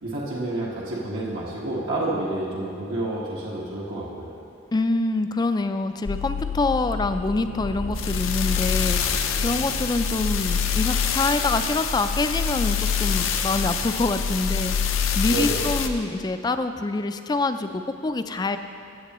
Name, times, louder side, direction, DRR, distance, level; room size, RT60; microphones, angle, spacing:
voice 1, 0.0-4.3 15.3-15.7, right 2 dB, 80° right, -7 dB, 1.5 m, -29 dB
voice 2, 4.7-9.0 9.4-18.6, left 3 dB, 20° left, 9 dB, 0.3 m, -26 dB
sound 1, 6.1-15.9, left 6 dB, 80° left, 0.6 m, -25 dB
15.0 x 8.2 x 3.0 m, 2.6 s
head